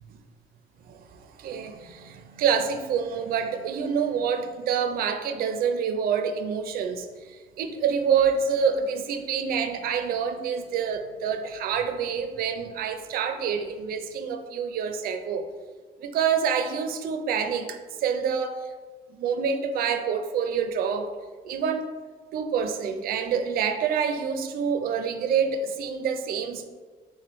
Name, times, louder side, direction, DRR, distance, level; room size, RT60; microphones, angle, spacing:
voice 1, 0.9-15.5 16.0-18.7 19.1-21.1 21.4-21.9 22.3-26.7, right 6 dB, 60° right, 6 dB, 0.4 m, -27 dB
3.5 x 3.1 x 3.0 m, 1.4 s
cardioid pair, 110°, 17 cm